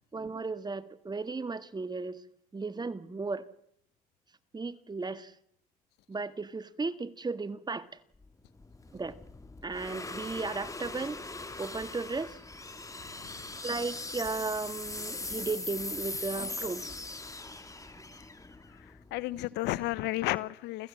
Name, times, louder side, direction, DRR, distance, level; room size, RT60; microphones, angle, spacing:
voice 1, 0.1-2.2 2.5-3.5 4.5-5.3 6.1-7.9 8.9-9.2 9.6-11.2 11.6-12.4 13.6-16.9 17.9-18.1, right 3 dB, 25° right, 1.6 m, -35 dB
sound 1, 8.2-19.5, left 3 dB, 20° left, 2.4 m, -41 dB
voice 2, 13.2-13.6 18.7-20.9, left 17 dB, 80° left, 0.9 m, -33 dB
29.5 x 15.0 x 7.5 m
supercardioid pair, 70°, 18 cm